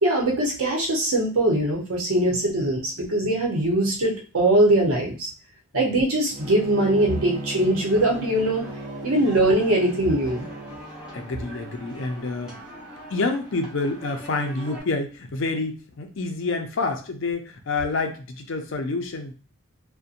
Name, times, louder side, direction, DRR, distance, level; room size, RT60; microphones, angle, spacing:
voice 1, 0.0-5.3 5.7-8.7 9.0-10.5, right 1 dB, 85° right, 0 dB, 0.9 m, -21 dB
voice 2, 2.3-2.7 11.1-12.6 13.1-19.3, left 3 dB, 60° left, 5 dB, 0.5 m, -28 dB
Bowed string instrument, 6.3-10.8, right 1 dB, 35° right, 0.4 m, -37 dB
sound 1, 6.4-14.8, right 1 dB, 5° right, 0.9 m, -42 dB
2.7 x 2.1 x 2.5 m, 0.35 s
head